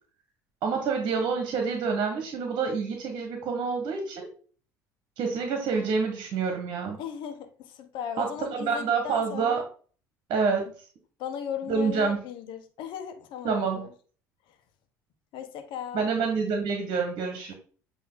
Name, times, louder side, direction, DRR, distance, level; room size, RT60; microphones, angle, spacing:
voice 1, 0.6-4.3 5.2-7.0 8.2-9.6 10.3-10.7 11.7-12.2 13.4-13.9 15.9-17.5, right 5 dB, 55° right, 4 dB, 1.5 m, -27 dB
voice 2, 7.0-9.6 11.2-13.9 14.5-14.6 15.3-16.1, left 8 dB, 60° left, 7 dB, 1.2 m, -37 dB
8.6 x 3.1 x 3.9 m, 0.41 s
hypercardioid pair, 65°, 9 cm